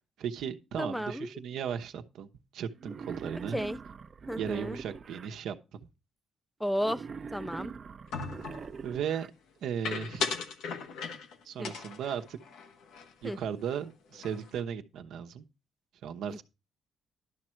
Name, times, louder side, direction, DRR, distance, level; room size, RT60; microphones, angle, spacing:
voice 1, 0.2-3.6 4.4-5.8 8.8-9.3 9.6-10.3 11.4-12.4 13.2-15.4 16.0-16.4, right 8 dB, 80° right, 0.9 m, -36 dB
voice 2, 0.8-1.3 3.5-3.8 4.3-4.8 6.6-7.0 7.3-7.7 11.6-11.7 13.2-13.4 16.3-16.4, equal, ahead, 0.4 m, -33 dB
Wild animals, 2.8-5.3 6.8-9.3, right 5 dB, 45° right, 0.6 m, -43 dB
sound 1, 8.1-8.7 9.8-11.3 11.6-13.4 13.7-13.8 14.1-14.6, left 5 dB, 85° left, 1.3 m, -37 dB
11.5 x 6.2 x 4.4 m
cardioid pair, 90°, 0 cm